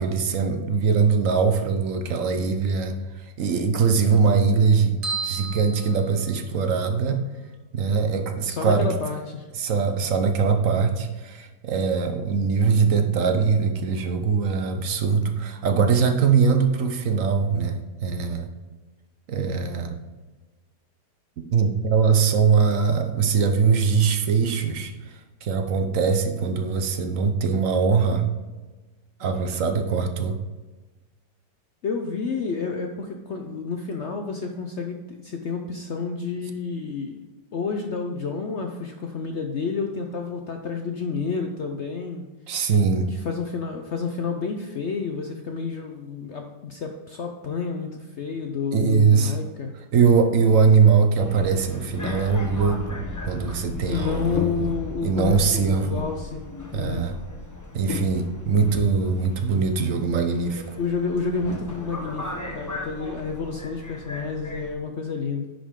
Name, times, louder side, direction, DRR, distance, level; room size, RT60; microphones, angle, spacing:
voice 1, 0.0-3.0 3.4-5.0 5.2-7.2 7.7-8.9 9.6-18.5 19.3-20.0 21.5-24.9 25.4-28.2 29.2-30.4 42.5-43.1 48.7-49.3 49.9-54.7 55.0-56.0 56.7-57.1 57.7-60.6, right 5 dB, 55° right, 6 dB, 1.1 m, -21 dB
sound 1, 5.0-6.8, right 4 dB, 30° right, 1.5 m, -33 dB
voice 2, 8.4-9.5 31.8-37.2 37.5-42.3 43.1-49.7 53.9-56.4 56.7-57.0 60.8-65.5, left 5 dB, 65° left, 4 dB, 0.7 m, -30 dB
Subway metro underground, 51.2-64.7, left 3 dB, 15° left, 0.7 m, -36 dB
10.0 x 5.2 x 3.7 m, 1.2 s
omnidirectional pair, 1.9 m